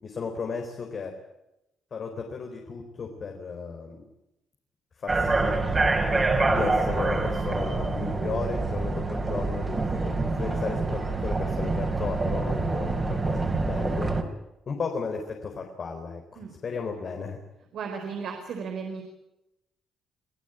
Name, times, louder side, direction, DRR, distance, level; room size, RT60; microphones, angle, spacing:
voice 1, 0.0-1.1 1.9-4.0 5.0-5.6 6.5-14.1 14.7-17.4, left 5 dB, 50° left, 3 dB, 4.2 m, -34 dB
sound 1, 5.1-14.2, right 3 dB, 25° right, 4.8 m, -26 dB
voice 2, 17.7-19.0, right 5 dB, 70° right, 3 dB, 4.6 m, -35 dB
27.0 x 16.5 x 9.2 m, 0.91 s
cardioid pair, 90°, 0 cm